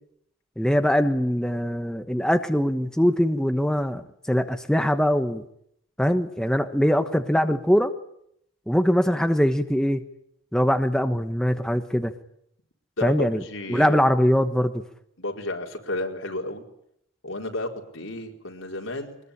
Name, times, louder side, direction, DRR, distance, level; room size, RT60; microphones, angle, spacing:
voice 1, 0.6-5.4 6.0-7.9 8.7-10.0 10.5-12.1 13.0-13.4 13.7-14.8, equal, 5° left, 7 dB, 1.2 m, -22 dB
voice 2, 13.0-14.1 15.2-16.6 17.2-19.2, left 1 dB, 80° left, 2 dB, 4.5 m, -32 dB
23.5 x 21.0 x 9.9 m, 0.73 s
head